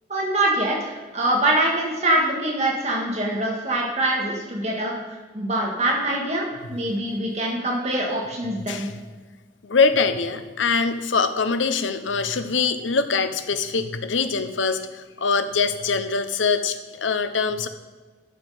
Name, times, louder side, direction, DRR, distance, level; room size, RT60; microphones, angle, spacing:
voice 1, 0.1-8.9, right 1 dB, 35° right, -2 dB, 1.6 m, -24 dB
voice 2, 9.6-17.7, left 4 dB, 80° left, 10 dB, 0.7 m, -23 dB
11.5 x 6.3 x 5.0 m, 1.3 s
head